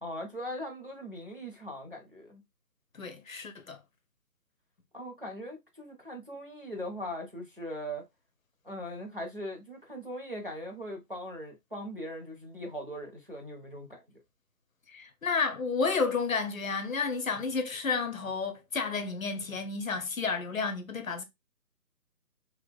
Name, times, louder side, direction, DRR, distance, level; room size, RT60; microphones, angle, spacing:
voice 1, 0.0-2.4 4.9-8.1 8.6-14.0, equal, 35° right, 0.6 m, -40 dB
voice 2, 3.0-3.8 14.9-21.2, left 4 dB, 55° left, 0.7 m, -31 dB
2.9 x 2.5 x 3.3 m
hypercardioid pair, 180°, 48 cm